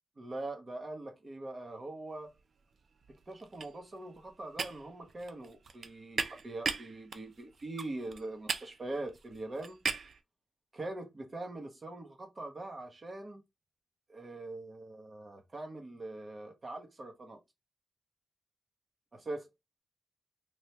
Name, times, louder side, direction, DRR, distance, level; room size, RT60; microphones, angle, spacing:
voice 1, 0.2-2.3 3.3-9.8 10.7-13.4 14.1-17.4 19.1-19.5, right 2 dB, 30° right, 1.0 m, -42 dB
sound 1, 2.4-2.7 3.0-10.2, right 5 dB, 50° right, 0.4 m, -39 dB
3.3 x 2.9 x 2.8 m
wide cardioid pair, 150°, 0 cm